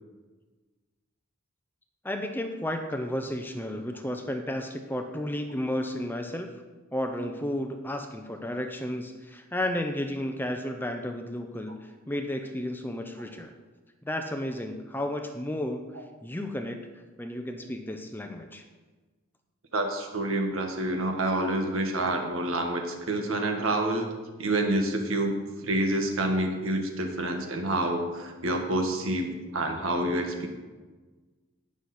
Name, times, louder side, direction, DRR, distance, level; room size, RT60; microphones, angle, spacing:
voice 1, 2.0-6.5 6.9-13.5 14.0-15.8 16.2-16.8 17.2-18.6, left 1 dB, 10° left, 5 dB, 0.6 m, -32 dB
voice 2, 19.7-24.1 24.4-25.4 25.6-30.5, right 1 dB, 75° right, 3 dB, 1.6 m, -28 dB
18.0 x 6.4 x 4.3 m, 1.3 s
head